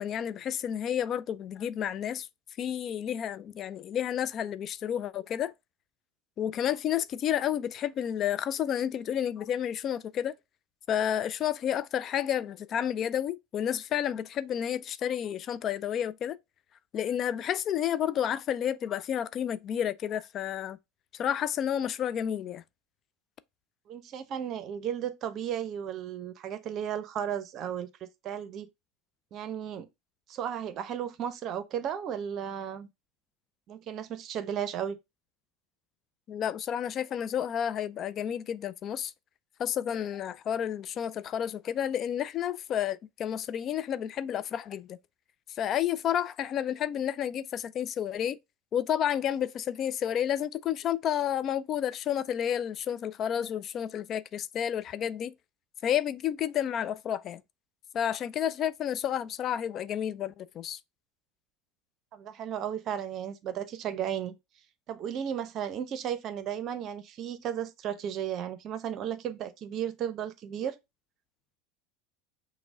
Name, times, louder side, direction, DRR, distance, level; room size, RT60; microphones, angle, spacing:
voice 1, 0.0-2.3 2.6-5.5 6.4-10.3 10.9-16.4 16.9-20.8 21.1-22.6 36.3-39.1 39.6-45.0 45.6-48.4 48.7-55.3 55.8-57.4 57.9-60.8, left 9 dB, 45° left, 0.3 m, -31 dB
voice 2, 23.9-28.7 29.3-29.9 30.3-32.9 33.7-35.0 62.1-64.4 64.9-70.8, right 9 dB, 50° right, 0.7 m, -34 dB
5.9 x 2.1 x 3.6 m
hypercardioid pair, 90°, 0 cm